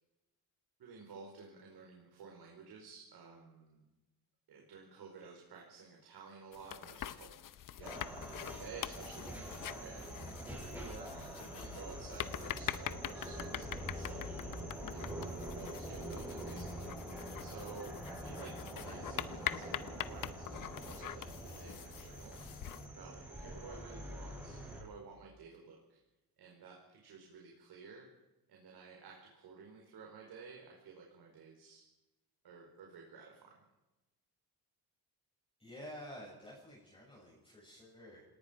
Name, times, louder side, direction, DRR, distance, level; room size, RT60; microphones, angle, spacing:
voice 1, 0.8-3.8 4.5-7.3 7.8-10.1 10.6-14.4 14.9-17.0 17.4-22.4 22.8-26.0 26.4-28.1 28.5-31.8 32.4-33.6, right 5 dB, 75° right, 0 dB, 4.8 m, -53 dB
sound 1, 6.5-22.9, left 11 dB, 55° left, 0.8 m, -44 dB
sound 2, 7.8-24.8, equal, 5° right, 7.6 m, -45 dB
voice 2, 35.6-38.2, equal, 15° left, -5 dB, 7.3 m, -50 dB
28.5 x 18.5 x 5.3 m, 1.0 s
cardioid pair, 150°, 39 cm